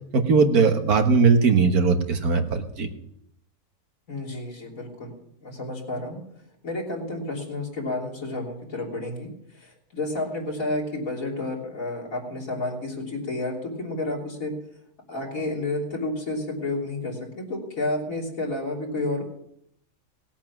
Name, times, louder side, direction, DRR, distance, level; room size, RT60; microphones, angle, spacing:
voice 1, 0.1-2.9, right 5 dB, 85° right, 6 dB, 2.0 m, -19 dB
voice 2, 4.1-5.1 5.4-6.2 6.6-9.3 9.6-14.5 15.1-19.2, left 2 dB, 65° left, -1 dB, 3.7 m, -30 dB
19.0 x 8.5 x 6.1 m, 0.74 s
omnidirectional pair, 1.5 m